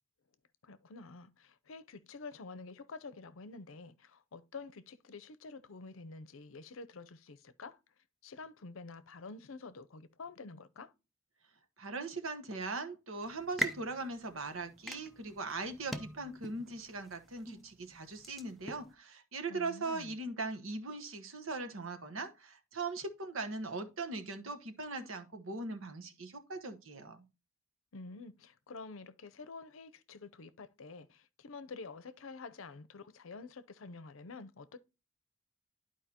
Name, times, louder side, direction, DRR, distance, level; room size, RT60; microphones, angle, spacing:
voice 1, 0.6-7.8 8.2-10.9 19.5-20.1 27.9-34.8, left 4 dB, 75° left, 0.6 m, -48 dB
voice 2, 11.8-27.3, right 3 dB, 80° right, 1.2 m, -40 dB
sound 1, 13.2-18.9, equal, ahead, 0.6 m, -43 dB
11.5 x 4.6 x 2.9 m
head